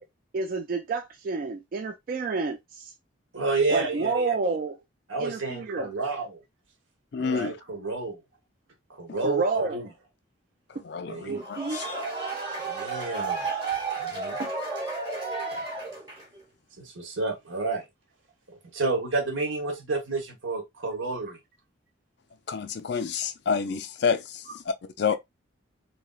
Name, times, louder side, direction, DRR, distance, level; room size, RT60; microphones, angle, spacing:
voice 1, 0.3-2.9 3.7-4.8 5.2-5.9 9.2-9.8 11.3-11.8 14.4-14.7, right 4 dB, 45° right, 0.3 m, -29 dB
voice 2, 3.3-4.6 5.1-6.4 7.2-8.2 8.9-9.9 11.1-11.4 12.6-13.5 14.0-14.4 16.8-17.8 18.5-21.4, right 3 dB, 80° right, 1.1 m, -30 dB
voice 3, 7.1-7.6 10.8-11.9 22.5-25.2, left 6 dB, 55° left, 0.4 m, -29 dB
sound 1, 11.3-16.4, right 4 dB, 20° right, 1.0 m, -32 dB
3.1 x 2.8 x 2.3 m
head